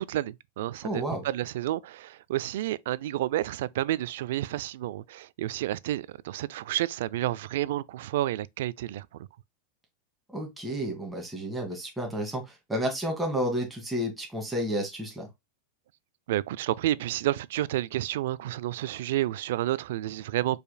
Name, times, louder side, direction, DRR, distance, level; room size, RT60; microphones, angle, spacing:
voice 1, 0.0-9.1 16.3-20.6, right 14 dB, 65° right, 0.4 m, -30 dB
voice 2, 0.8-1.3 10.3-15.3, equal, 5° right, 1.8 m, -31 dB
5.1 x 4.7 x 2.2 m
supercardioid pair, 160°, 0 cm